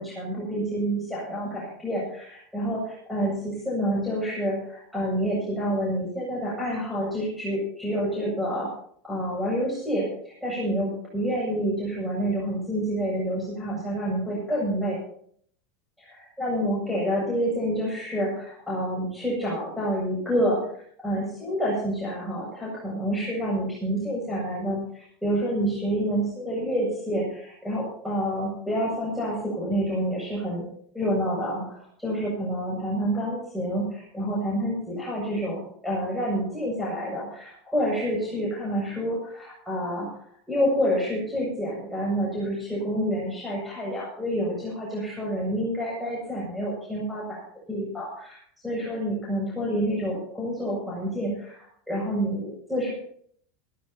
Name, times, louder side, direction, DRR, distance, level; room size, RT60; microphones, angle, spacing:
voice 1, 0.0-8.7 9.0-15.0 16.0-30.7 30.9-40.1 40.5-47.4 47.7-48.4 48.6-52.9, equal, ahead, -6 dB, 7.6 m, -28 dB
17.5 x 16.5 x 3.0 m, 0.63 s
hypercardioid pair, 105°, 0 cm